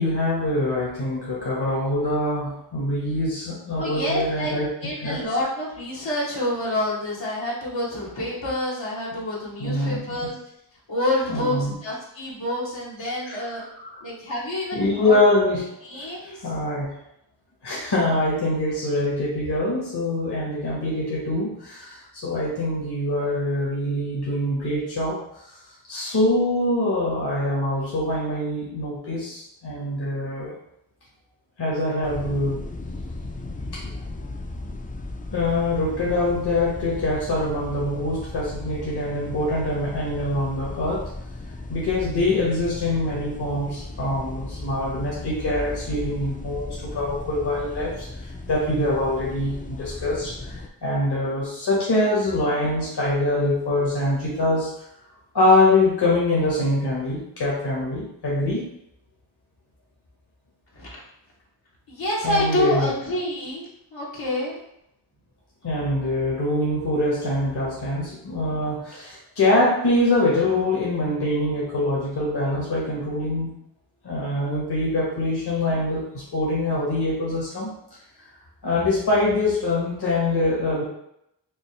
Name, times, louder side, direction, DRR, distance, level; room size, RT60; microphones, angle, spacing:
voice 1, 0.0-5.2 9.6-10.3 11.3-11.7 13.3-13.4 13.8-13.9 14.7-15.6 16.0-16.9 17.6-25.2 25.9-30.6 31.6-32.6 33.7-33.8 35.3-41.0 41.7-48.1 48.5-54.7 55.3-58.7 62.2-62.9 65.6-73.5 74.0-77.7 78.6-80.8, left 2 dB, 60° left, -4 dB, 1.4 m, -24 dB
voice 2, 3.7-4.5 4.8-10.3 10.9-13.6 14.0-15.2 15.8-16.5 60.7-60.9 61.9-64.6, left 1 dB, 80° left, -6 dB, 1.6 m, -27 dB
sound 1, 32.0-50.7, left 2 dB, 20° left, 0.4 m, -36 dB
5.4 x 2.2 x 3.3 m, 0.78 s
cardioid pair, 40°, 45 cm